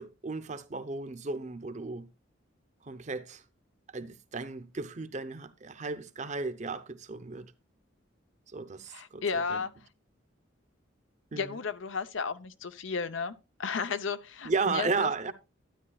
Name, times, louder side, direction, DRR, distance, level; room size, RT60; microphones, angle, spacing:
voice 1, 0.0-2.1 2.8-3.4 3.9-7.5 8.5-9.7 11.3-11.6 14.4-15.3, right 4 dB, 40° right, 0.7 m, -34 dB
voice 2, 8.9-9.7 11.3-13.3 13.6-14.9, left 5 dB, 80° left, 0.7 m, -33 dB
12.5 x 9.5 x 2.3 m
head